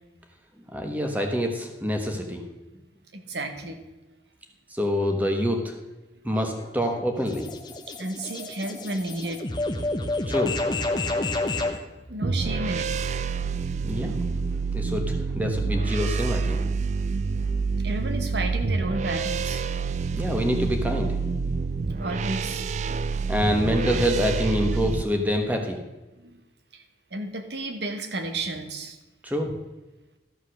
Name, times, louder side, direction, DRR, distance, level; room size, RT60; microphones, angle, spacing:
voice 1, 0.7-2.4 4.7-5.7 6.2-7.5 10.3-10.5 13.8-14.2 14.7-16.6 20.1-21.2 23.3-25.8 29.2-29.5, equal, 10° right, 3 dB, 1.2 m, -26 dB
voice 2, 3.1-3.8 8.0-9.4 12.1-13.1 17.8-19.6 21.9-22.7 26.2-26.5 26.7-26.8 27.1-29.0, right 2 dB, 70° right, 6 dB, 1.3 m, -32 dB
sound 1, 6.4-11.8, left 2 dB, 25° left, 0.8 m, -30 dB
sound 2, 12.2-25.0, right 4 dB, 40° right, 0.3 m, -27 dB
13.0 x 5.4 x 6.3 m, 1.1 s
head